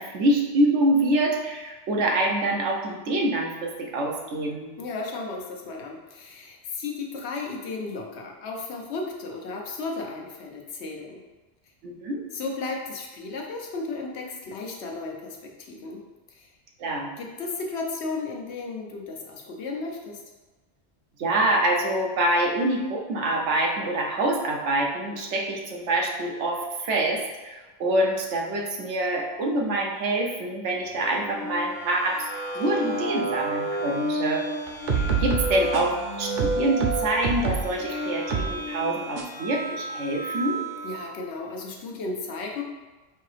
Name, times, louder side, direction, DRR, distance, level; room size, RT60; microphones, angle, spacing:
voice 1, 0.0-4.7 11.8-12.2 16.8-17.1 21.2-32.3 32.5-34.5 34.9-40.6, right 1 dB, 85° right, 0 dB, 1.0 m, -26 dB
voice 2, 4.8-11.2 12.3-16.0 16.3-16.5 17.2-20.2 40.8-42.6, left 3 dB, 75° left, 0 dB, 0.9 m, -34 dB
sound 1, 30.9-41.1, right 1 dB, 35° left, 0.5 m, -31 dB
sound 2, 34.7-36.0 36.4-37.7 38.3-38.5 39.2-39.3, right 6 dB, 55° right, 0.6 m, -27 dB
4.5 x 2.8 x 3.2 m, 1.2 s
omnidirectional pair, 1.2 m